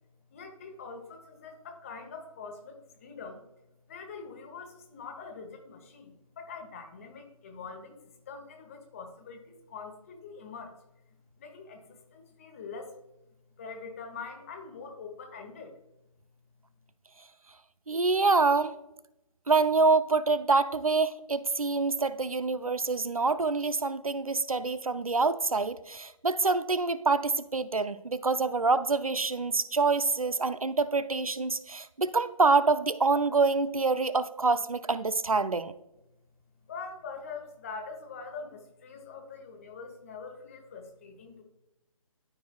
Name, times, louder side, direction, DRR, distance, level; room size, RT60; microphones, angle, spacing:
voice 1, 0.3-3.4 3.9-8.0 8.2-10.8 11.4-13.0 13.6-15.8 36.7-41.4, left 4 dB, 25° left, 4 dB, 1.1 m, -44 dB
voice 2, 17.9-18.7 19.5-35.7, right 3 dB, 80° right, 14 dB, 0.6 m, -26 dB
13.0 x 4.6 x 2.3 m, 0.90 s
figure-of-eight pair, 145°, 18 cm